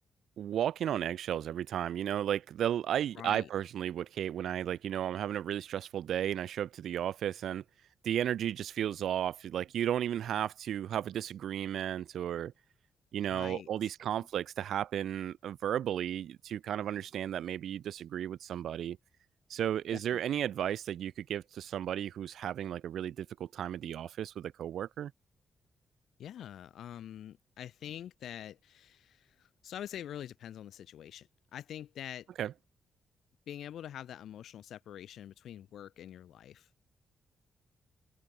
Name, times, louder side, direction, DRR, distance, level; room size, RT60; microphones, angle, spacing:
voice 1, 0.4-7.6 8.0-12.5 13.1-19.0 19.5-25.1 32.4-32.5, right 10 dB, 80° right, 2.0 m, -34 dB
voice 2, 3.1-3.5 13.3-13.9 14.2-14.3 19.9-20.4 26.2-32.3 33.5-36.7, left 10 dB, 85° left, 3.8 m, -45 dB
open air
cardioid pair, 125°, 0 cm